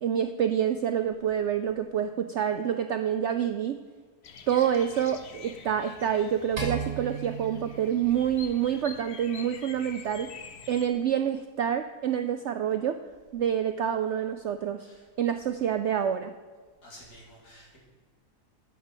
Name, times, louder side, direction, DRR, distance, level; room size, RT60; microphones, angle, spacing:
voice 1, 0.0-3.8 4.5-10.3 10.7-13.0 13.3-14.9 15.2-16.3, right 9 dB, 75° right, 9 dB, 0.6 m, -27 dB
Bird vocalization bird call bird song, 4.2-10.9, left 6 dB, 50° left, 0.9 m, -47 dB
sound 1, 6.6-8.9, right 5 dB, 60° right, 2.3 m, -36 dB
voice 2, 16.8-17.8, equal, 75° left, -3 dB, 3.5 m, -51 dB
9.3 x 7.4 x 7.3 m, 1.5 s
omnidirectional pair, 1.7 m